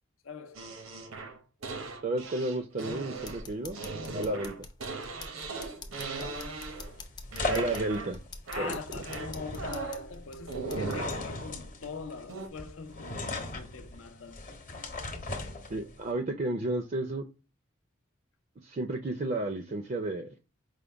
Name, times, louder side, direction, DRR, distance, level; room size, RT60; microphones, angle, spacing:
voice 1, 0.2-0.7 4.3-4.4 6.2-6.7 8.5-14.9, left 4 dB, 85° left, 0.6 m, -43 dB
sound 1, 0.5-7.0 7.3-8.2 8.5-10.1 10.5-11.2 12.3-12.5, right 3 dB, 90° right, 0.8 m, -38 dB
voice 2, 2.0-3.8 4.1-4.5 7.5-8.2 8.6-8.8 15.7-17.3 18.6-20.3, right 2 dB, 40° right, 0.4 m, -32 dB
sound 2, 3.1-11.2, left 3 dB, 20° left, 0.4 m, -47 dB
sound 3, 6.3-16.1, left 2 dB, 40° left, 0.9 m, -39 dB
5.0 x 2.2 x 3.3 m
head